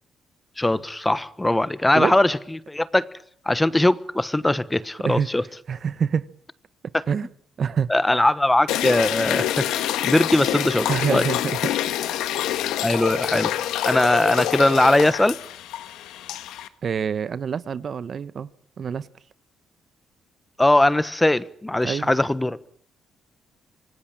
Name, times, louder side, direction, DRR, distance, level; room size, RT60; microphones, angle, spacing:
voice 1, 0.6-2.4 2.7-3.0 3.5-5.4 7.9-11.2 12.8-13.5 13.8-15.4 20.6-22.7, left 1 dB, 10° left, 1.1 m, -20 dB
voice 2, 5.7-6.3 7.1-7.3 7.6-7.9 10.9-11.8 12.1-12.4 16.8-18.5 18.8-19.1 21.8-22.1, right 7 dB, 50° right, 1.0 m, -26 dB
sound 1, 8.7-16.7, left 12 dB, 90° left, 1.5 m, -26 dB
25.5 x 18.0 x 8.9 m
cardioid pair, 90°, 0 cm